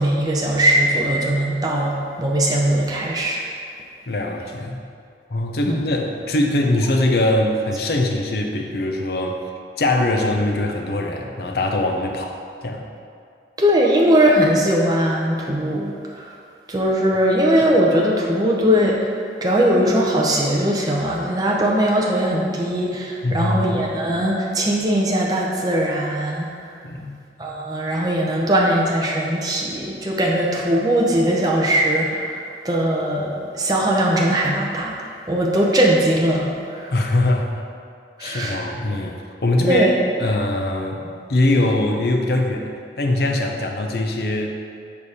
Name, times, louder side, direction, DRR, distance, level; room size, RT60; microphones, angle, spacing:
voice 1, 0.0-3.4 5.7-5.8 13.6-16.3 16.7-19.1 19.4-26.8 27.4-35.0 35.3-36.9 38.2-38.6 39.7-39.9, equal, 20° right, -2 dB, 0.6 m, -20 dB
voice 2, 4.1-4.8 5.3-9.4 9.8-12.8 23.2-23.7 26.8-27.2 36.9-37.6 38.2-39.2 39.4-39.9 40.2-41.0 41.3-42.7 43.0-44.5, left 1 dB, 60° left, 2 dB, 0.7 m, -22 dB
6.8 x 5.1 x 4.2 m, 2.3 s
head